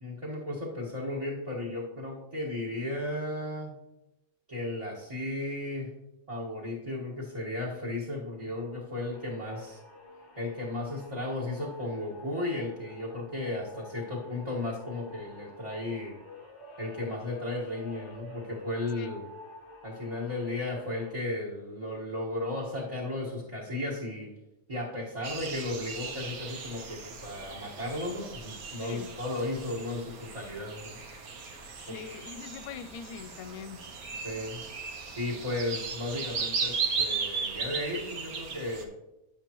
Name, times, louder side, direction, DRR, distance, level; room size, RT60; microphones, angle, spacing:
voice 1, 0.0-3.8 4.5-5.9 6.3-9.8 10.4-16.1 16.8-19.2 19.8-24.3 24.7-31.0 31.9-32.0 34.2-34.6 35.2-38.9, left 2 dB, 25° right, -6 dB, 1.5 m, -35 dB
sound 1, 9.1-21.1, left 2 dB, 25° left, 0.8 m, -49 dB
sound 2, 25.2-38.8, right 5 dB, 80° right, 1.4 m, -37 dB
voice 2, 31.8-33.9, left 7 dB, 80° left, 12 dB, 1.0 m, -42 dB
11.0 x 6.9 x 3.0 m, 0.94 s
omnidirectional pair, 1.5 m